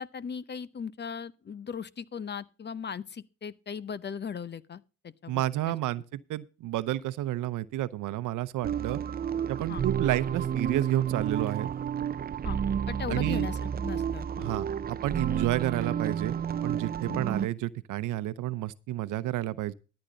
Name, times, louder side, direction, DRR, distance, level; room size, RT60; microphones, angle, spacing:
voice 1, 0.0-5.7 9.7-9.8 12.4-12.6 12.9-14.5 17.1-17.2, left 6 dB, 35° left, 0.7 m, -38 dB
voice 2, 5.3-9.0 9.5-11.7 13.1-13.5 14.4-19.7, right 14 dB, 85° right, 0.8 m, -31 dB
sound 1, 8.6-17.5, right 8 dB, 30° right, 0.5 m, -31 dB
13.5 x 8.9 x 4.0 m
cardioid pair, 90°, 30 cm